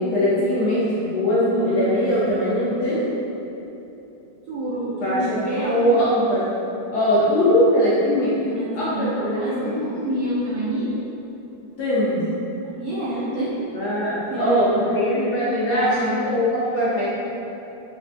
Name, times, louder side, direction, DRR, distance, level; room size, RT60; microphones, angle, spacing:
voice 1, 0.0-3.2 5.0-6.5 6.9-8.4 8.7-9.1 9.5-9.8 11.8-12.4 13.7-17.1, equal, 70° left, -8 dB, 1.0 m, -21 dB
voice 2, 4.5-6.0 8.5-11.0 12.8-13.7 14.3-14.9 15.7-16.2 16.9-17.1, right 1 dB, 70° right, -10 dB, 0.9 m, -28 dB
5.1 x 2.2 x 2.6 m, 3.0 s
omnidirectional pair, 2.2 m